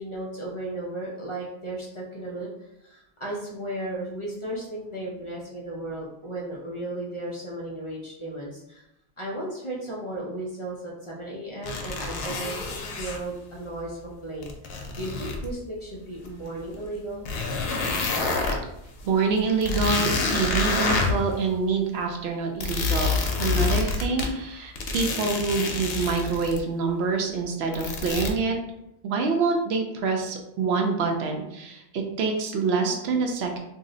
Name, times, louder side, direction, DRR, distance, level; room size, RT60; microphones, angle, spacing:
voice 1, 0.0-8.8 9.2-17.3 28.7-28.8, right 1 dB, 40° left, -4 dB, 0.5 m, -35 dB
sound 1, 11.6-13.2 14.4-15.5 16.3-16.4 16.9-17.0 17.3-18.6 19.0-19.1 19.4-21.3 22.6-24.3 24.8-26.6 27.7-28.3, left 3 dB, 70° left, 0.8 m, -27 dB
voice 2, 19.0-28.5 29.0-33.6, right 4 dB, 80° right, 3 dB, 0.8 m, -26 dB
2.7 x 2.0 x 3.6 m, 0.84 s
omnidirectional pair, 1.1 m